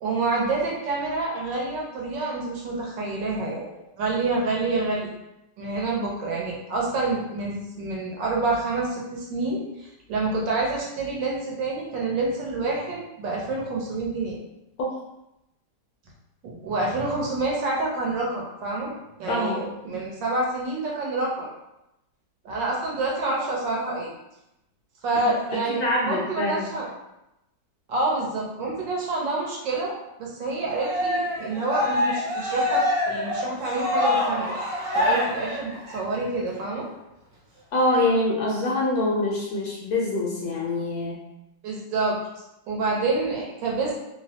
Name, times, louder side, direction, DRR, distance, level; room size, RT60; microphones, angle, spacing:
voice 1, 0.0-5.2 5.6-14.4 16.4-18.9 19.2-21.5 22.4-24.1 25.0-26.9 27.9-29.9 30.2-34.6 34.9-36.9 41.6-42.2 42.7-43.9, right 3 dB, 85° right, -2 dB, 1.4 m, -27 dB
voice 2, 19.3-19.7 25.7-26.7 37.7-41.2, left 2 dB, 70° left, -3 dB, 0.9 m, -24 dB
Cheering, 30.7-36.2, left 1 dB, 60° right, 1.3 m, -26 dB
3.2 x 2.0 x 2.7 m, 0.88 s
omnidirectional pair, 1.9 m